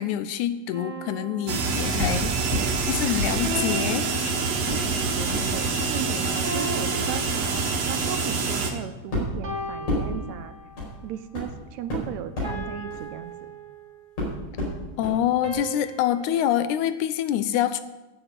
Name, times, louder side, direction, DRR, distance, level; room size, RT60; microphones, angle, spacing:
voice 1, 0.0-2.5 2.8-4.1 15.0-17.8, left 11 dB, 80° left, 13 dB, 2.0 m, -26 dB
sound 1, 0.7-2.4 3.4-4.9 6.4-8.1 9.4-10.9 12.4-14.2 15.4-16.5, right 2 dB, 35° right, 2.0 m, -37 dB
sound 2, 1.5-8.7, right 4 dB, 60° right, 2.4 m, -26 dB
voice 2, 1.9-2.2 4.7-10.5 11.0-13.5, right 10 dB, 75° right, 11 dB, 1.8 m, -36 dB
sound 3, 2.0-2.7 3.2-4.1 4.6-13.7 14.2-15.2 15.5-15.6, left 1 dB, 55° left, 5.9 m, -33 dB
11.0 x 7.9 x 8.8 m, 1.1 s
omnidirectional pair, 3.6 m